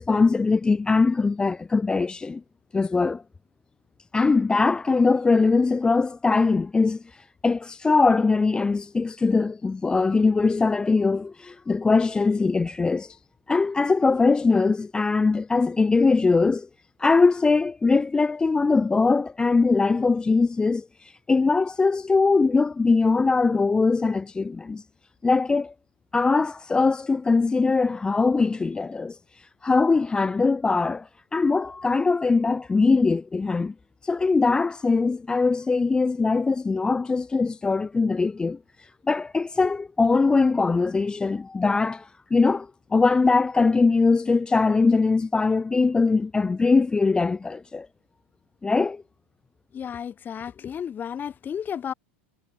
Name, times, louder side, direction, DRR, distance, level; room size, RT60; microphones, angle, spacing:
voice 1, 0.0-2.4 2.7-3.2 4.1-13.2 13.5-16.7 17.0-24.8 25.2-25.7 26.1-33.7 34.0-47.9 48.6-49.0, left 4 dB, 10° left, 0.4 m, -22 dB
voice 2, 49.7-51.9, left 8 dB, 30° left, 1.7 m, -33 dB
hypercardioid pair, 105°, 7 cm